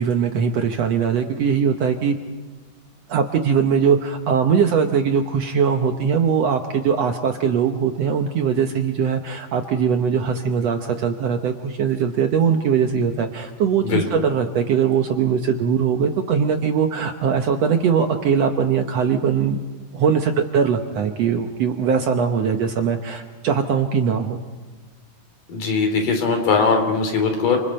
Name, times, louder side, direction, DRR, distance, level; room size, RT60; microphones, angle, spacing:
voice 1, 0.0-2.2 3.1-19.6 19.9-24.4, right 6 dB, 65° right, 5 dB, 1.8 m, -21 dB
voice 2, 25.5-27.6, left 4 dB, 75° left, 4 dB, 4.7 m, -20 dB
30.0 x 26.0 x 4.4 m, 1.3 s
omnidirectional pair, 3.9 m